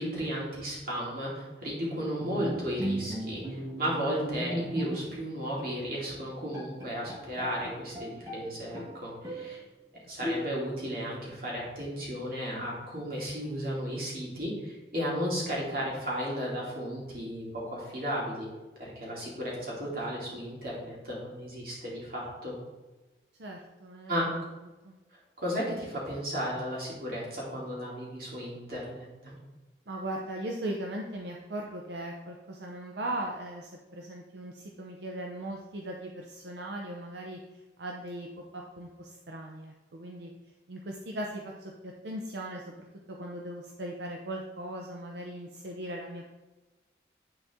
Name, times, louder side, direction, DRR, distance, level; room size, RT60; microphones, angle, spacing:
voice 1, 0.0-9.6 10.1-18.5 18.8-22.6 24.1-24.3 25.4-29.4, equal, 55° right, -5 dB, 2.5 m, -34 dB
Bowed string instrument, 2.2-5.3 5.6-5.8 6.2-6.3 6.5-8.4 8.7-9.6 10.2-10.8, equal, 20° right, 1.2 m, -36 dB
voice 2, 23.4-24.3 24.8-24.9 29.9-40.3 40.7-46.3, right 1 dB, 80° right, 0 dB, 0.7 m, -39 dB
9.7 x 4.1 x 3.6 m, 1.2 s
head